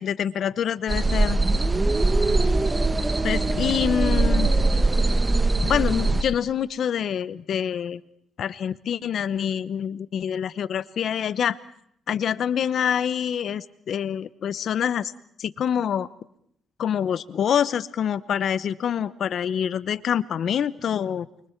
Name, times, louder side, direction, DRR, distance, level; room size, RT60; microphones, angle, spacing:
voice 1, 0.0-1.4 3.2-4.5 5.6-8.0 8.4-11.6 12.1-15.1 15.4-16.1 16.8-21.3, left 9 dB, 65° left, 17 dB, 0.9 m, -26 dB
sound 1, 0.9-6.2, right 2 dB, 25° right, 1.1 m, -21 dB
29.0 x 24.0 x 4.6 m, 0.69 s
cardioid pair, 80°, 0 cm